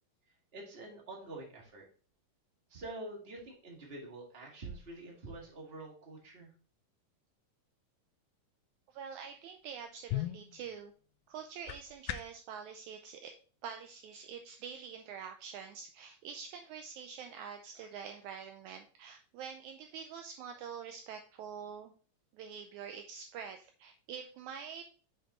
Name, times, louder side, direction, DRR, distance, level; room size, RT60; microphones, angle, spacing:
voice 1, 0.5-1.8 2.7-6.5, right 2 dB, 25° right, -2 dB, 1.7 m, -46 dB
voice 2, 8.9-10.9 11.3-13.3 13.6-21.9 22.3-24.8, right 7 dB, 80° right, 6 dB, 1.8 m, -46 dB
sound 1, 9.6-12.5, left 14 dB, 85° left, 2.2 m, -41 dB
6.6 x 6.5 x 3.1 m, 0.40 s
omnidirectional pair, 3.8 m